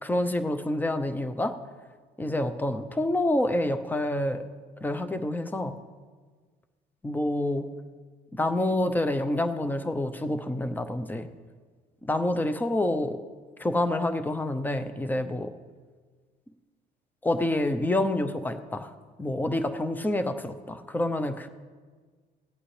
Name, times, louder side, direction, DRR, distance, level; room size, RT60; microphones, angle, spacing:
voice 1, 0.0-1.6 2.2-4.4 4.8-5.8 7.0-7.7 8.3-11.3 12.0-13.2 13.6-15.5 17.2-18.9 19.2-21.5, left 1 dB, 10° left, 9 dB, 0.7 m, -27 dB
16.5 x 8.7 x 3.3 m, 1.5 s
cardioid pair, 110°, 17 cm